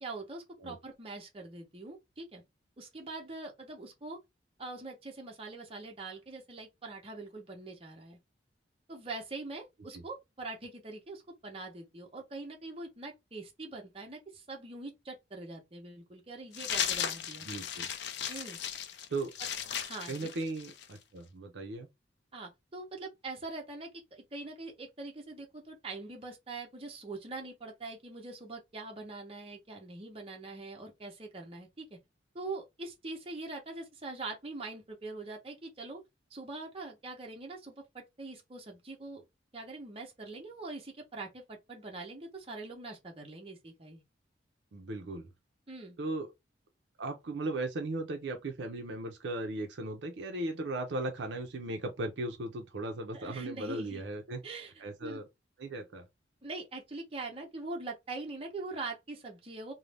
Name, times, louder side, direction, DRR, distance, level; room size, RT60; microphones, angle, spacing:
voice 1, 0.0-2.4 2.8-4.2 4.6-8.2 8.9-17.5 18.3-18.6 19.9-20.3 22.3-32.0 32.3-36.0 36.3-39.2 39.5-44.0 45.7-46.0 53.1-54.0 54.4-54.7 55.0-55.2 56.4-59.7, right 3 dB, 30° right, 0.8 m, -43 dB
sound 1, 16.5-21.0, left 8 dB, 60° left, 0.4 m, -36 dB
voice 2, 17.5-17.9 19.1-19.3 20.1-21.9 44.7-45.3 46.0-46.3 47.0-54.4 54.8-55.3 55.6-56.1, right 2 dB, 65° right, 0.5 m, -37 dB
2.5 x 2.0 x 3.2 m
head